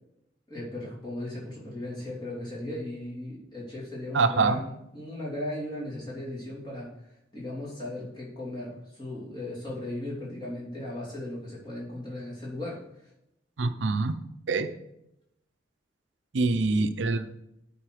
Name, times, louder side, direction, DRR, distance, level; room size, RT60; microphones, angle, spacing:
voice 1, 0.5-6.9 7.3-12.8, left 1 dB, 25° left, -6 dB, 3.2 m, -37 dB
voice 2, 4.1-4.6 13.6-14.2 14.5-14.7 16.3-17.3, right 3 dB, 90° right, 10 dB, 0.6 m, -25 dB
10.5 x 4.4 x 4.9 m, 0.82 s
head